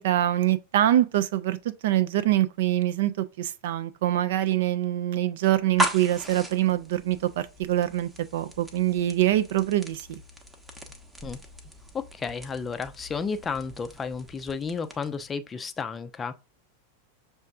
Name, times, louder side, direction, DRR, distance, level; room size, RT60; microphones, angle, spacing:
voice 1, 0.0-1.6 1.8-10.2, right 13 dB, 55° right, 0.4 m, -24 dB
sound 1, 5.6-15.3, equal, 10° right, 0.8 m, -37 dB
voice 2, 12.2-16.3, left 5 dB, 20° left, 0.4 m, -32 dB
6.1 x 2.5 x 2.4 m
figure-of-eight pair, 90°, 0 cm